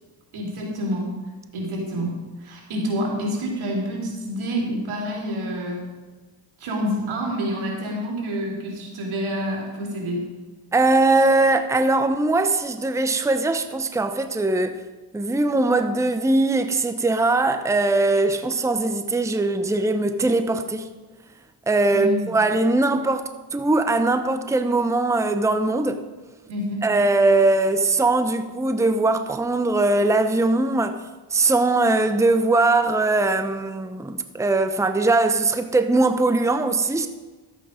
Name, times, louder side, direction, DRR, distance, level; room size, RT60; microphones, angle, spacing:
voice 1, 0.3-1.0 1.5-2.1 2.4-5.8 6.6-10.2 21.9-22.3 26.5-26.8, equal, 85° right, 3.3 m, -28 dB
voice 2, 10.7-14.8 15.1-20.9 21.7-26.0 26.8-31.0 31.3-37.1, right 2 dB, 5° right, 0.8 m, -21 dB
12.5 x 8.5 x 5.1 m
cardioid pair, 70°, 48 cm